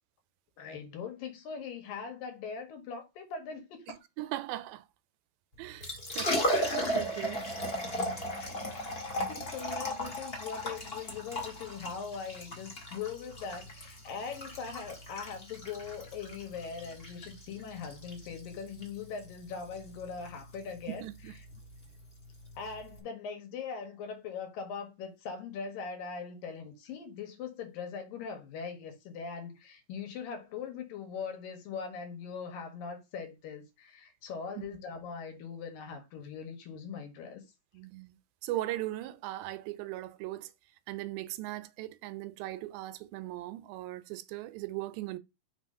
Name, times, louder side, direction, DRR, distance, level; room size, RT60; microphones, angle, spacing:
voice 1, 0.6-4.0 8.4-8.6 9.3-21.0 22.6-37.4, left 6 dB, 70° left, 3.1 m, -41 dB
voice 2, 3.9-4.9 5.6-7.4 20.9-21.4 34.6-34.7 37.7-40.5 40.9-45.2, right 16 dB, 85° right, 2.4 m, -39 dB
Liquid, 5.6-23.0, equal, 30° left, 1.2 m, -36 dB
5.9 x 4.2 x 5.4 m
omnidirectional pair, 4.2 m